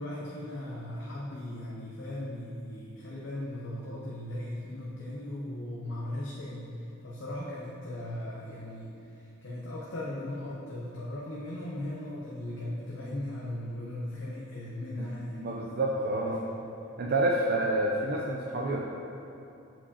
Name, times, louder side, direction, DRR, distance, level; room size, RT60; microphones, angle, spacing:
voice 1, 0.0-16.6, left 1 dB, 60° left, -5 dB, 0.7 m, -38 dB
voice 2, 15.4-16.4 17.0-18.8, right 1 dB, 50° right, -2 dB, 0.4 m, -28 dB
7.3 x 4.7 x 2.8 m, 2.7 s
head